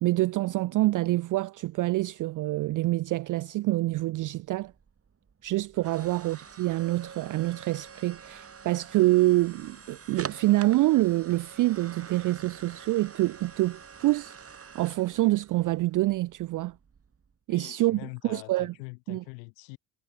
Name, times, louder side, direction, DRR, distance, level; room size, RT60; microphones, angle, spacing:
voice 1, 0.0-4.7 5.4-14.4 14.7-16.8 17.5-18.7 19.1-19.2, right 18 dB, 40° right, 0.4 m, -26 dB
sound 1, 4.4-17.3, right 6 dB, 25° right, 3.7 m, -47 dB
voice 2, 17.5-19.8, left 32 dB, 85° left, 1.2 m, -44 dB
supercardioid pair, 95°, 50 cm